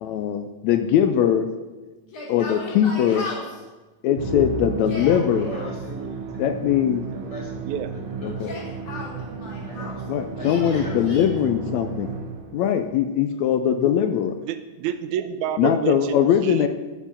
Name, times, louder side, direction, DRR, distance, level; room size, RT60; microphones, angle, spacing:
voice 1, 0.0-1.5 2.3-3.3 4.0-5.5 6.4-7.0 8.2-8.5 10.1-12.1 12.5-14.4 15.6-16.7, left 9 dB, 85° left, 8 dB, 1.6 m, -21 dB
Yell, 2.0-3.6 4.7-5.7 8.3-10.0 10.4-11.2, left 2 dB, 70° left, 4.3 m, -36 dB
Musical instrument, 4.2-12.7, right 5 dB, 60° right, 1.8 m, -33 dB
voice 2, 5.4-6.5 7.1-8.6 9.6-10.0 10.3-11.4 13.3-13.5 16.2-16.3, left 1 dB, 15° left, -3 dB, 1.8 m, -40 dB
voice 3, 14.4-16.7, right 9 dB, 80° right, 11 dB, 1.8 m, -28 dB
13.0 x 4.5 x 7.1 m, 1.2 s
omnidirectional pair, 3.7 m